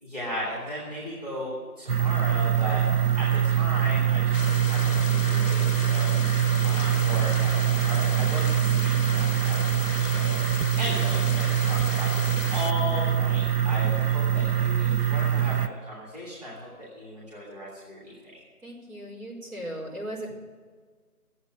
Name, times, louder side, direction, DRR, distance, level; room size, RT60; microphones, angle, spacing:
voice 1, 0.0-12.1 12.5-18.1, equal, 25° right, -7 dB, 2.7 m, -36 dB
sound 1, 1.9-15.7, right 9 dB, 90° right, 0.7 m, -24 dB
sound 2, 4.3-12.7, left 5 dB, 60° left, 0.5 m, -37 dB
voice 2, 18.6-20.3, right 1 dB, 70° right, -2 dB, 4.9 m, -37 dB
12.0 x 8.1 x 9.7 m, 1.5 s
figure-of-eight pair, 180°, 45 cm